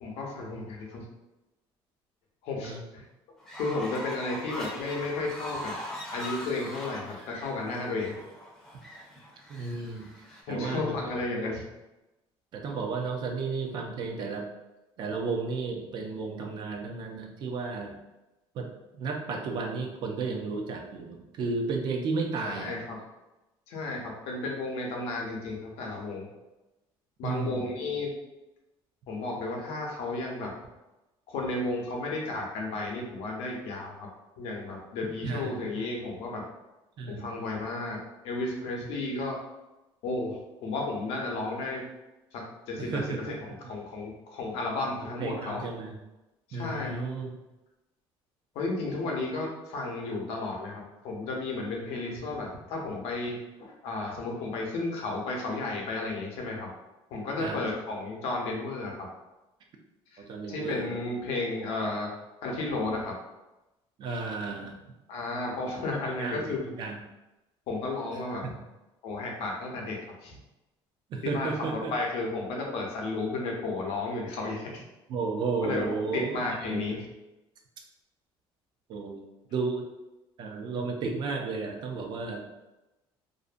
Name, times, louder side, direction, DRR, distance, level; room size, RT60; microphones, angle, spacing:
voice 1, 0.0-1.0 2.4-3.1 3.6-5.7 6.1-8.1 10.5-11.6 22.4-23.0 23.7-26.3 27.2-28.1 29.1-30.5 31.3-34.1 34.4-36.4 37.1-38.0 38.2-39.4 40.0-41.9 42.3-43.0 43.3-45.6 46.5-46.9 48.5-56.7 57.1-59.1 60.1-62.1 62.4-63.1 65.1-66.6 67.7-68.4 69.0-70.4 71.2-74.8 75.6-77.1, left 2 dB, 75° left, -1 dB, 0.6 m, -33 dB
Fowl, 3.4-10.4, left 1 dB, 5° left, 0.5 m, -41 dB
voice 2, 9.5-10.1 10.5-11.0 12.5-14.5 15.0-18.0 18.5-22.8 27.2-27.7 35.2-35.8 37.0-37.3 42.8-43.4 45.2-45.9 46.5-47.3 57.4-57.6 60.2-60.9 64.0-64.8 66.2-67.0 68.4-68.5 71.1-71.9 75.1-76.9 78.9-79.2 79.5-79.8 80.4-82.5, right 4 dB, 50° right, 2 dB, 0.4 m, -33 dB
2.5 x 2.1 x 2.5 m, 1.0 s
cardioid pair, 150°, 10 cm